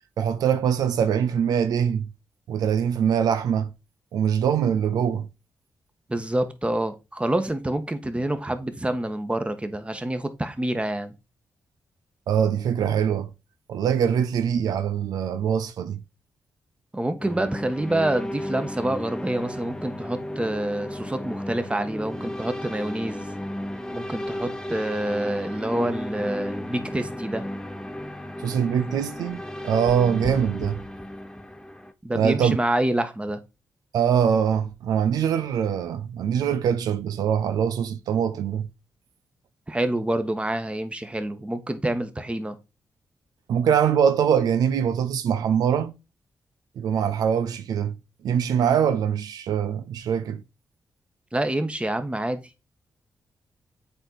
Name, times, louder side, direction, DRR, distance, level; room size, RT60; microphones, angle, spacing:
voice 1, 0.2-2.1 2.5-3.7 4.1-5.3 12.3-13.3 13.7-16.0 28.4-29.4 29.6-30.8 32.1-32.6 33.9-38.7 43.5-45.9 46.8-47.9 48.2-50.4, right 8 dB, 85° right, 0.6 m, -23 dB
voice 2, 6.1-11.1 16.9-23.2 23.9-27.5 32.0-33.4 39.7-42.6 51.3-52.4, right 1 dB, 20° right, 1.4 m, -27 dB
sound 1, 17.2-31.9, left 1 dB, 10° left, 1.0 m, -34 dB
7.8 x 4.5 x 4.1 m
supercardioid pair, 55°, 6 cm